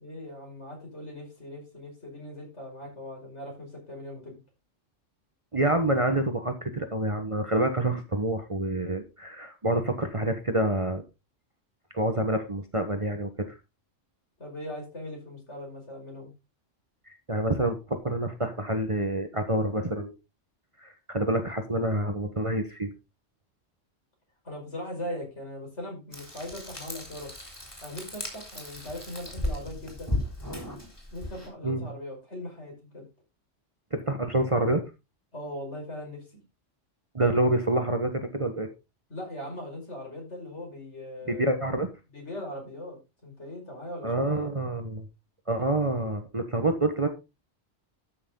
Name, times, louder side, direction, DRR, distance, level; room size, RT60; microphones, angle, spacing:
voice 1, 0.0-4.4 14.4-16.3 24.4-27.3 27.8-30.2 31.1-33.1 35.3-36.4 39.1-41.5 42.1-44.5, left 1 dB, 65° left, 0 dB, 5.7 m, -40 dB
voice 2, 5.5-11.0 11.9-13.3 17.3-20.1 20.8-22.9 31.6-31.9 33.9-34.8 37.1-38.7 41.3-41.9 44.0-45.1 45.5-47.1, right 1 dB, 25° right, 6 dB, 1.2 m, -27 dB
Frying (food), 26.1-31.5, left 1 dB, 20° left, 3.5 m, -36 dB
13.0 x 6.5 x 3.7 m, 0.27 s
omnidirectional pair, 1.3 m